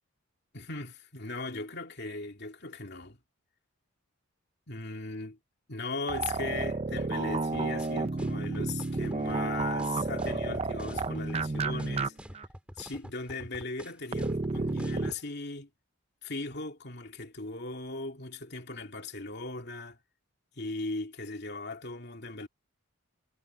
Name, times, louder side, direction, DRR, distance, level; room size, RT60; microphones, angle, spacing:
voice 1, 0.5-3.2 4.7-5.4 5.7-12.2 12.8-15.7 16.2-20.0 20.6-22.5, left 3 dB, 50° left, 2.8 m, -38 dB
sound 1, 6.1-12.1 12.3-12.5 14.1-15.1, right 3 dB, 30° right, 0.6 m, -31 dB
sound 2, 7.3-15.2, equal, 5° right, 2.3 m, -47 dB
head